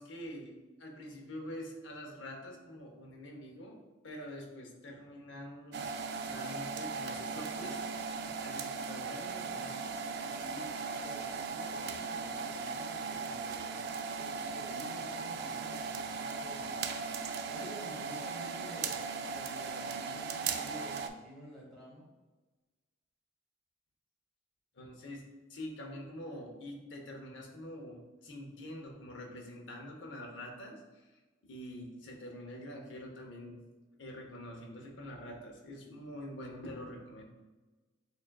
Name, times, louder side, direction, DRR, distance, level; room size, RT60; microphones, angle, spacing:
voice 1, 0.0-3.8 4.0-7.8 8.3-9.9 24.8-25.2 25.5-31.1 31.4-33.6 34.0-37.2, left 1 dB, 65° left, 0 dB, 0.8 m, -46 dB
sound 1, 5.7-21.1, right 5 dB, 55° right, 0.3 m, -38 dB
voice 2, 10.3-13.8 14.1-16.7 17.5-22.1, equal, ahead, -6 dB, 1.2 m, -50 dB
6.6 x 2.4 x 2.2 m, 1.2 s
head